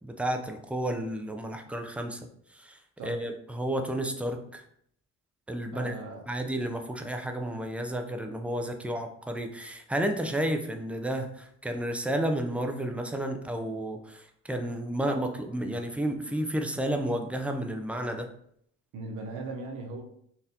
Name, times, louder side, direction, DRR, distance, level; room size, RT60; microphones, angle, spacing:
voice 1, 0.0-2.2 2.5-4.6 5.5-5.9 6.3-18.3, right 1 dB, 5° right, 4 dB, 0.4 m, -31 dB
voice 2, 5.7-6.3 18.9-20.0, right 3 dB, 80° right, 1 dB, 0.7 m, -38 dB
4.1 x 2.6 x 2.7 m, 0.67 s
cardioid pair, 90°, 30 cm